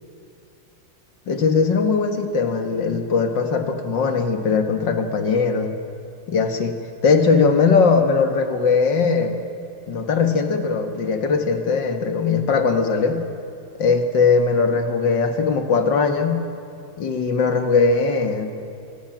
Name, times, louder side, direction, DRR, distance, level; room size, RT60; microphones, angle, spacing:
voice 1, 1.3-5.7 6.3-6.8 7.0-9.3 9.9-13.2 13.8-16.4 17.0-18.5, left 4 dB, 60° left, 7 dB, 2.2 m, -20 dB
25.0 x 18.0 x 9.1 m, 2.7 s
omnidirectional pair, 2.3 m